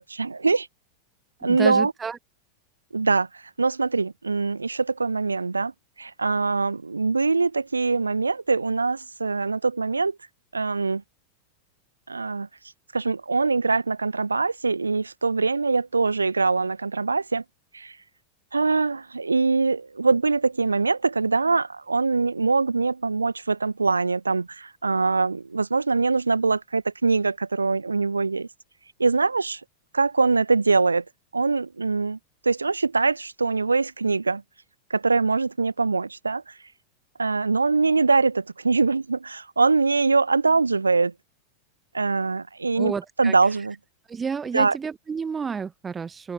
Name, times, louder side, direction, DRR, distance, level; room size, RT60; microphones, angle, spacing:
voice 1, 0.1-0.7 1.4-1.9 2.9-5.7 6.0-10.2 10.5-11.0 12.1-12.5 12.9-17.4 17.7-17.9 18.5-28.5 29.0-29.6 29.9-31.0 31.3-32.2 32.4-34.4 34.9-36.5 37.2-41.1 41.9-42.9 43.2-43.7 44.5-44.8, right 4 dB, 80° right, 1.3 m, -23 dB
voice 2, 1.4-2.2 42.8-43.3 44.1-46.3, right 5 dB, 15° right, 1.6 m, -30 dB
figure-of-eight pair, 90°, 0 cm